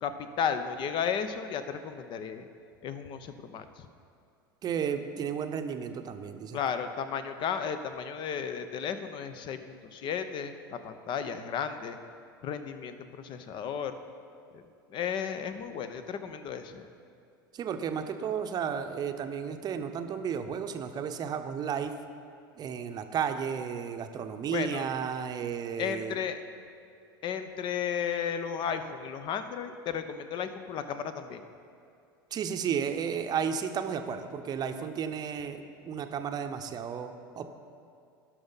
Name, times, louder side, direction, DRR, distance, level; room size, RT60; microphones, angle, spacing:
voice 1, 0.0-2.5 2.8-3.7 6.5-12.0 12.4-14.0 14.5-14.6 14.9-16.9 24.5-24.9 25.8-26.4 27.2-31.4, left 7 dB, 40° left, 10 dB, 0.8 m, -34 dB
voice 2, 4.6-6.6 17.5-21.9 22.6-26.2 32.3-37.6, right 7 dB, 35° right, 7 dB, 0.8 m, -33 dB
17.5 x 6.1 x 4.0 m, 2.5 s
figure-of-eight pair, 80°, 12 cm